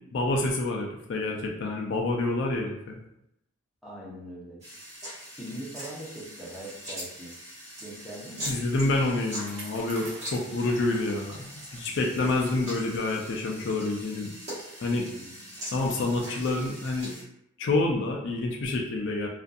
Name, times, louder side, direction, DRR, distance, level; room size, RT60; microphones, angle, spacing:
voice 1, 0.1-3.0 8.5-14.3 14.8-15.1 15.7-17.1 17.6-19.3, left 2 dB, 55° left, 1 dB, 0.3 m, -28 dB
voice 2, 3.8-4.6 5.4-7.3 7.8-8.5 14.9-15.5, right 1 dB, ahead, -7 dB, 0.6 m, -42 dB
sound 1, 4.6-17.2, equal, 30° right, 1.0 m, -42 dB
Bicycle, 7.9-11.9 12.3-12.4 13.2-13.3, right 2 dB, 60° right, 0.7 m, -48 dB
2.5 x 2.5 x 2.2 m, 0.79 s
head